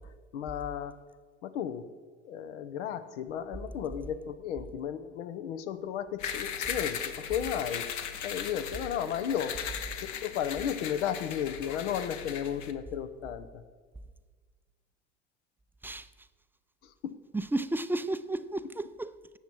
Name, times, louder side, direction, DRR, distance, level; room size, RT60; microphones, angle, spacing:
voice 1, 0.3-0.9 1.4-1.8 2.2-7.9 8.2-9.6 10.2-13.5 16.8-17.2, left 9 dB, 80° left, 0.9 m, -34 dB
sound 1, 6.2-12.7, left 8 dB, 55° left, 1.1 m, -38 dB
voice 2, 17.3-19.4, right 2 dB, 5° right, 0.4 m, -33 dB
17.0 x 7.4 x 4.5 m
hypercardioid pair, 80°, 35 cm